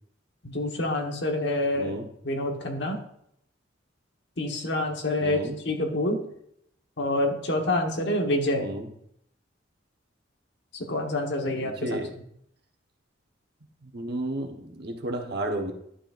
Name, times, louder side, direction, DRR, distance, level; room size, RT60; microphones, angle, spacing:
voice 1, 0.4-2.0 2.2-3.0 4.4-6.2 7.0-8.7 10.7-12.0, left 1 dB, 65° left, 2 dB, 1.3 m, -27 dB
voice 2, 5.2-5.6 8.6-8.9 11.5-12.1 13.8-15.7, right 1 dB, 60° right, 2 dB, 1.1 m, -32 dB
11.0 x 6.6 x 2.5 m, 0.71 s
head